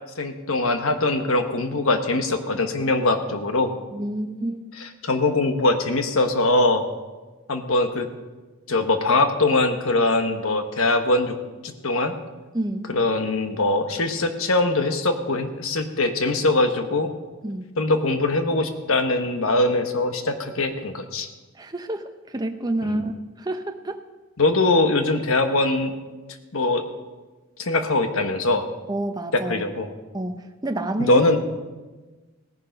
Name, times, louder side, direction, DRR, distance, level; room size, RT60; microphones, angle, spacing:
voice 1, 0.2-3.7 4.8-6.9 7.5-8.1 8.7-11.3 11.6-12.2 12.9-17.1 17.8-21.3 22.8-23.0 24.4-25.9 26.5-26.8 27.6-28.7 29.3-29.9 31.0-31.4, left 2 dB, 70° left, 7 dB, 1.2 m, -22 dB
voice 2, 3.9-4.6 12.5-12.9 17.4-17.6 21.6-24.0 28.9-29.6 30.1-31.2, right 1 dB, 20° right, 6 dB, 0.7 m, -28 dB
17.0 x 10.0 x 5.3 m, 1.2 s
head